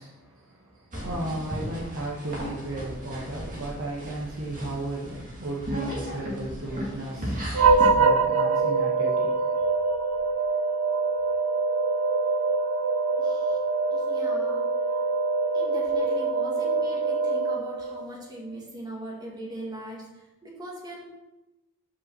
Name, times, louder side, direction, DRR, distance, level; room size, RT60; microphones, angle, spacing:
voice 1, 0.0-9.3, right 2 dB, 60° right, -5 dB, 1.2 m, -35 dB
sound 1, 0.9-7.9, equal, 35° right, 1.9 m, -35 dB
sound 2, 7.5-18.1, right 4 dB, 90° right, 0.5 m, -24 dB
voice 2, 13.2-13.6 13.9-14.6 14.9-15.0 15.5-21.0, right 1 dB, 20° right, -3 dB, 1.8 m, -40 dB
5.8 x 5.4 x 6.1 m, 1.0 s
head